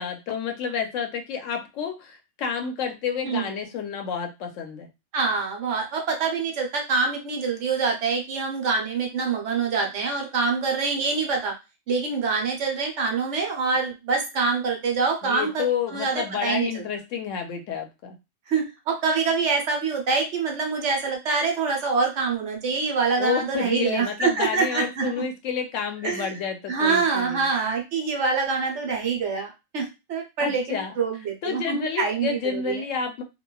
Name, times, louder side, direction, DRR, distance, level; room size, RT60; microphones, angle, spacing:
voice 1, 0.0-4.9 15.2-18.2 23.2-27.5 30.4-31.0 31.4-33.2, left 7 dB, 75° left, 5 dB, 0.9 m, -30 dB
voice 2, 5.1-11.5 11.9-16.7 18.5-25.1 26.0-26.3 26.7-32.8, right 4 dB, 65° right, 1 dB, 1.0 m, -25 dB
3.0 x 2.2 x 2.2 m, 0.25 s
omnidirectional pair, 1.4 m